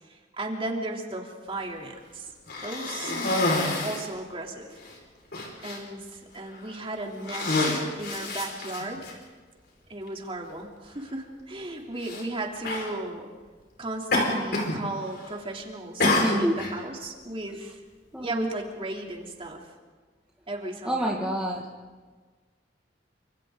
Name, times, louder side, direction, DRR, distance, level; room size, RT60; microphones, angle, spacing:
voice 1, 0.1-2.3 2.6-4.8 5.6-9.0 9.9-13.3 13.8-17.8 18.2-19.6 20.5-21.2, right 2 dB, 30° right, 0 dB, 3.2 m, -35 dB
Cough, 2.5-4.1 4.8-4.9 5.3-5.8 6.5-6.8 7.2-9.1 10.1-10.2 12.0-12.2 12.6-12.9 14.1-14.8 15.1-15.5 16.0-16.8, left 2 dB, 60° left, 5.2 m, -27 dB
voice 2, 16.2-16.5 18.1-18.5 20.9-21.7, equal, 5° right, -3 dB, 2.0 m, -28 dB
29.0 x 26.5 x 3.9 m, 1.4 s
head